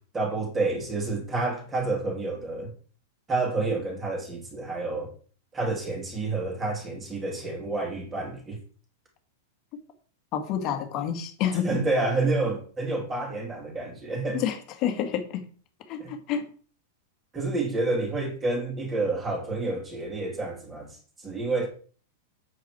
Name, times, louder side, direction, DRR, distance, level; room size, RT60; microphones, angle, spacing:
voice 1, 0.1-2.7 3.3-5.1 5.5-8.6 11.5-14.4 16.0-16.1 17.3-21.7, right 3 dB, 10° right, 2.9 m, -29 dB
voice 2, 10.3-11.7 14.3-15.4 15.9-16.5, left 9 dB, 30° left, 1.9 m, -28 dB
8.4 x 8.0 x 4.7 m
supercardioid pair, 165°, 0 cm